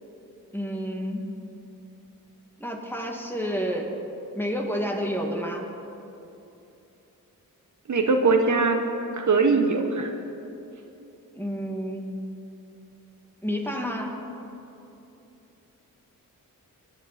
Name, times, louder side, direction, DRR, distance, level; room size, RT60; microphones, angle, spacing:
voice 1, 0.5-1.3 2.6-3.9 4.3-5.7 11.3-12.1 13.4-14.2, equal, 5° left, 1 dB, 2.3 m, -29 dB
voice 2, 7.9-8.8 9.2-10.1, right 4 dB, 55° right, 4 dB, 1.3 m, -21 dB
20.5 x 10.5 x 4.3 m, 2.9 s
cardioid pair, 55°, 35 cm